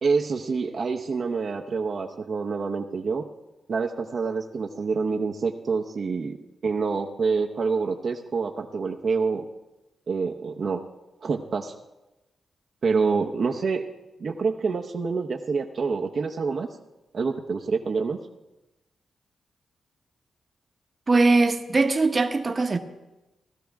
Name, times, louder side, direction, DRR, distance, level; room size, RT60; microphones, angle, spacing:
voice 1, 0.0-3.2 3.7-6.4 6.6-9.4 10.1-10.8 11.2-11.8 12.8-13.8 14.2-16.7 17.1-18.2, right 4 dB, 55° right, 0.8 m, -27 dB
voice 2, 21.1-22.8, right 3 dB, 35° right, 1.0 m, -21 dB
17.5 x 12.5 x 3.5 m
cardioid pair, 90°, 0 cm